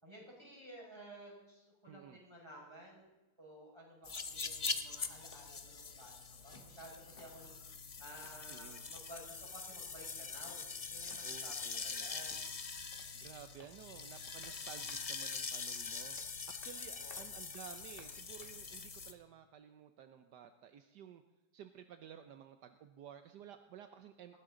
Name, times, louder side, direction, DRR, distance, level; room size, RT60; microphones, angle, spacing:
voice 1, 0.0-3.1 3.4-6.1 6.4-7.6 8.0-11.6 11.8-12.5 16.9-17.2, right 1 dB, 15° right, -2 dB, 5.7 m, -54 dB
voice 2, 1.9-2.2 8.5-8.9 11.2-12.1 13.1-16.2 16.5-21.2 21.5-24.3, right 9 dB, 75° right, 9 dB, 1.4 m, -54 dB
sound 1, 4.0-19.1, left 5 dB, 50° left, 0.4 m, -43 dB
sound 2, 5.3-18.7, left 2 dB, 30° left, 1.8 m, -65 dB
19.5 x 16.0 x 3.8 m, 1.1 s
omnidirectional pair, 1.9 m